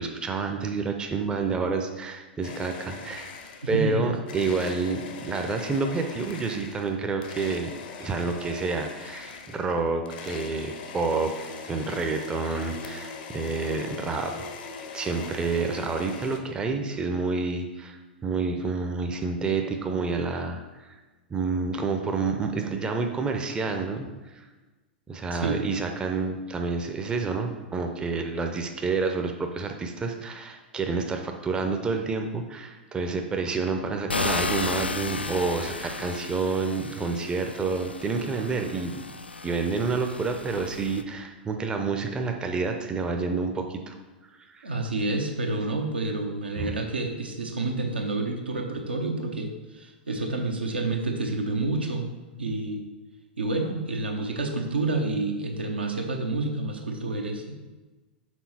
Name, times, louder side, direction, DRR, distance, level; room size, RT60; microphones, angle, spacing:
voice 1, 0.0-3.3 3.7-7.7 8.0-14.3 14.9-21.0 21.3-24.4 25.1-39.0 39.4-44.0 44.5-44.7 46.6-46.8, right 4 dB, 15° right, 4 dB, 0.6 m, -29 dB
sound 1, 2.4-3.9 4.3-16.4, left 5 dB, 55° left, 0.7 m, -40 dB
voice 2, 3.7-4.1 25.3-25.7 44.6-52.1 52.4-52.8 53.4-57.5, right 2 dB, 80° right, 2 dB, 0.9 m, -29 dB
sound 2, 34.1-41.0, left 3 dB, 85° left, 0.3 m, -33 dB
6.1 x 3.8 x 4.2 m, 1.2 s
figure-of-eight pair, 95°, 6 cm